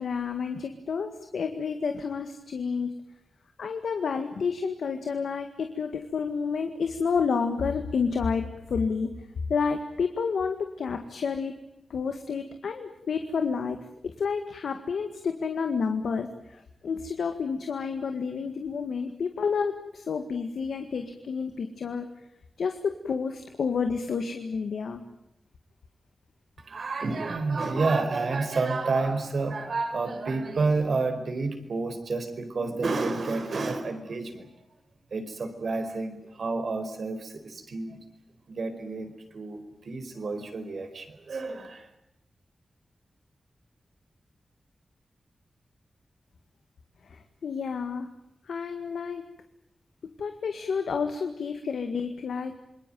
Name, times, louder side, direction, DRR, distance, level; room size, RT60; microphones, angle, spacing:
voice 1, 0.0-2.9 3.6-9.1 9.5-11.5 11.9-13.8 14.0-22.1 22.6-25.0 47.1-48.1 48.5-49.2 50.2-52.5, left 5 dB, 85° left, 6 dB, 1.9 m, -30 dB
voice 2, 26.6-34.5 35.1-38.0 38.5-41.9, right 3 dB, 75° right, 7 dB, 4.6 m, -30 dB
27.5 x 21.5 x 9.2 m, 0.83 s
cardioid pair, 50°, 0 cm